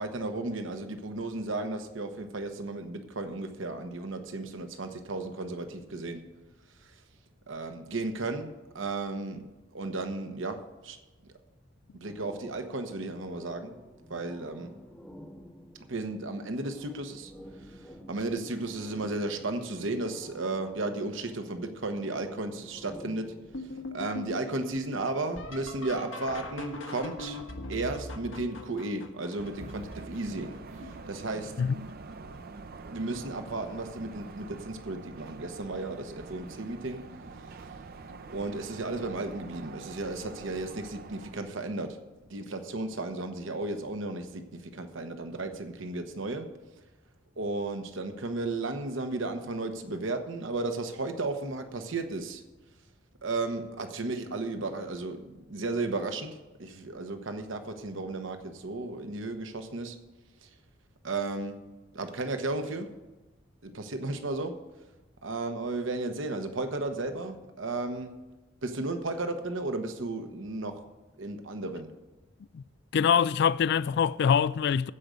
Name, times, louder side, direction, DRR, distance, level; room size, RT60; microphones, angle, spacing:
voice 1, 0.0-6.2 6.8-7.0 7.5-9.4 9.7-11.0 11.9-13.7 14.1-14.7 15.9-17.3 17.7-23.3 23.9-27.4 27.7-31.5 32.9-37.0 37.4-37.6 38.3-41.9 42.3-46.5 47.4-52.4 53.2-60.0 60.4-60.5 61.0-61.6 61.9-62.9 63.6-64.5 65.2-68.1 68.6-70.8 71.2-71.9, right 2 dB, 70° right, 1.1 m, -34 dB
sound 1, 12.1-23.8, equal, 5° left, 0.9 m, -50 dB
sound 2, 23.5-31.2 31.9-32.4 32.9-33.5 34.8-34.9 35.6-35.9 38.1-38.2 40.5-40.6, left 1 dB, 90° left, 1.5 m, -42 dB
sound 3, 29.4-41.5, right 4 dB, 50° right, 0.6 m, -45 dB
voice 2, 72.9-74.9, left 7 dB, 55° left, 0.3 m, -24 dB
15.5 x 5.1 x 6.8 m
head